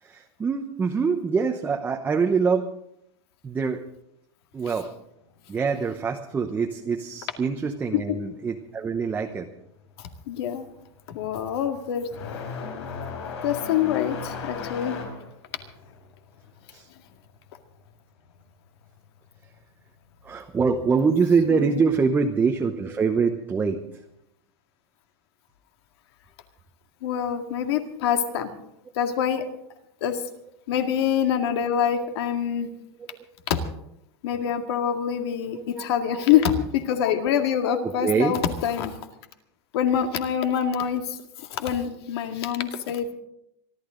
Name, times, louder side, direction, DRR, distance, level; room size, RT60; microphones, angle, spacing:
voice 1, 0.0-2.7 3.4-3.8 4.5-4.9 5.5-9.5 16.7-16.9 20.2-23.8 28.3-28.4 35.5-36.4 37.8-38.3, right 5 dB, 15° right, 3 dB, 0.9 m, -24 dB
sound 1, 9.5-9.9 10.2-18.5 18.8-19.8 20.8-20.9 21.7-21.8 23.6-23.7, left 5 dB, 85° left, 5.3 m, -37 dB
voice 2, 10.0-10.7 11.1-12.1 13.4-15.0 21.5-21.8 27.0-28.5 29.0-29.5 30.0-30.2 30.7-32.7 33.5-33.6 34.2-39.0 39.7-43.1, left 9 dB, 70° left, 6 dB, 2.1 m, -25 dB
25.5 x 12.0 x 3.9 m, 0.78 s
supercardioid pair, 160°, 14 cm